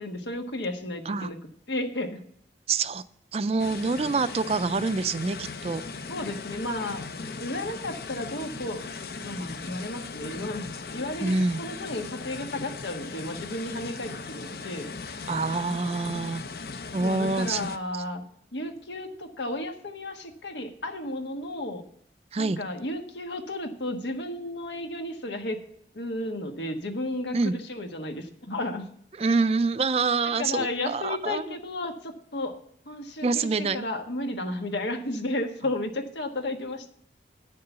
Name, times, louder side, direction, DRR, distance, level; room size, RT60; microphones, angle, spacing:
voice 1, 0.0-1.4 1.7-2.2 6.1-7.0 7.4-8.8 9.2-14.9 17.0-18.2 18.5-21.8 22.4-25.6 25.9-28.8 30.2-32.6 32.8-36.9, left 1 dB, 85° left, 5 dB, 1.4 m, -33 dB
voice 2, 2.7-3.0 3.3-5.8 11.2-11.6 15.3-16.4 16.9-17.7 22.3-22.6 27.3-27.5 29.2-31.6 33.2-33.9, right 4 dB, 35° right, 14 dB, 0.4 m, -26 dB
sound 1, 3.6-17.8, left 4 dB, 60° left, 0.7 m, -38 dB
9.6 x 6.8 x 6.6 m, 0.66 s
head